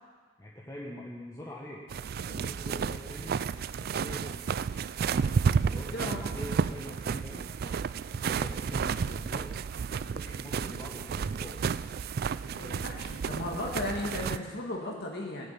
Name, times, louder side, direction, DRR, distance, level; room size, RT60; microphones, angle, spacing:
voice 1, 0.4-1.8 2.1-3.4 3.8-4.6 5.6-7.8 8.1-9.5 10.1-11.6 12.4-13.0, left 1 dB, 20° left, -4 dB, 1.4 m, -44 dB
sound 1, 1.9-14.4, right 6 dB, 50° right, 0.3 m, -32 dB
voice 2, 5.9-6.2 12.5-15.5, left 1 dB, 55° left, -1 dB, 2.0 m, -35 dB
17.5 x 7.3 x 8.7 m, 1.5 s
head